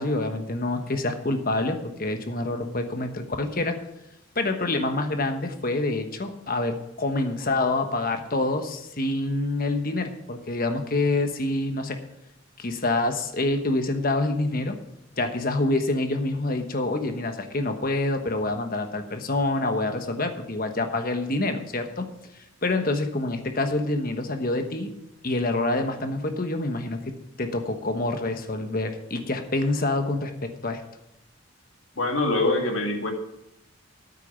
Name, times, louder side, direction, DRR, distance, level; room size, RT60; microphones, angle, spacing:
voice 1, 0.0-3.8 4.3-12.0 12.6-14.7 15.1-22.1 22.6-24.9 25.2-30.8, left 2 dB, 45° left, 6 dB, 1.2 m, -27 dB
voice 2, 32.0-33.1, left 2 dB, 75° left, 3 dB, 2.0 m, -24 dB
9.2 x 8.4 x 7.0 m, 0.88 s
head